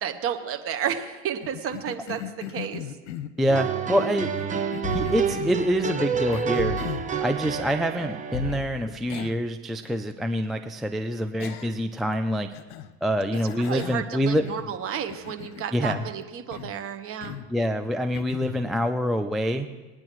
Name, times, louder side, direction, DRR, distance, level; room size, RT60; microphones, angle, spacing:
voice 1, 0.0-2.8 13.7-17.4, right 8 dB, 40° right, 8 dB, 1.2 m, -31 dB
Cough, 1.4-3.6 4.4-5.6 6.3-7.1 8.5-8.6 9.1-9.5 9.8-9.9 11.4-12.0 12.5-12.9 13.3-14.8 15.1-16.1 16.5-16.8 17.2-17.5 18.1-18.6, left 10 dB, 75° left, 1.0 m, -39 dB
voice 2, 3.4-4.3 4.9-6.8 7.2-12.5 13.0-14.4 15.7-16.0 17.5-19.7, equal, ahead, 5 dB, 0.3 m, -26 dB
sound 1, 3.5-8.7, right 7 dB, 20° right, 1.0 m, -29 dB
sound 2, 4.8-5.6 6.6-7.3 8.3-9.1, left 5 dB, 50° left, 1.6 m, -35 dB
21.5 x 9.6 x 3.1 m, 1.3 s
supercardioid pair, 125°, 35 cm